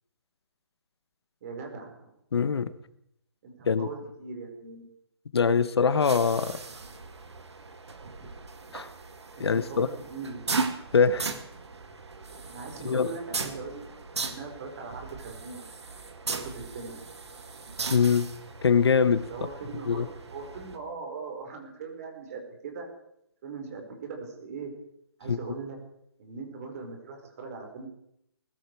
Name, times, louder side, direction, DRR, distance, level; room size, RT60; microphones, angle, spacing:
voice 1, 1.4-2.1 3.4-4.9 8.2-8.3 9.4-10.7 12.4-13.9 14.3-15.7 16.2-17.0 19.3-22.9 23.4-24.7 25.2-25.8 26.2-27.9, right 4 dB, 35° right, 4.9 m, -40 dB
voice 2, 2.3-2.7 3.7-3.9 5.3-6.6 8.7-8.9 9.4-9.9 10.9-11.3 12.8-13.1 17.9-18.3 18.6-19.3 19.9-20.1 25.3-25.4, left 6 dB, 70° left, 1.3 m, -23 dB
sound 1, 5.9-20.8, right 4 dB, 90° right, 2.4 m, -38 dB
20.5 x 13.0 x 4.8 m
hypercardioid pair, 170°, 14 cm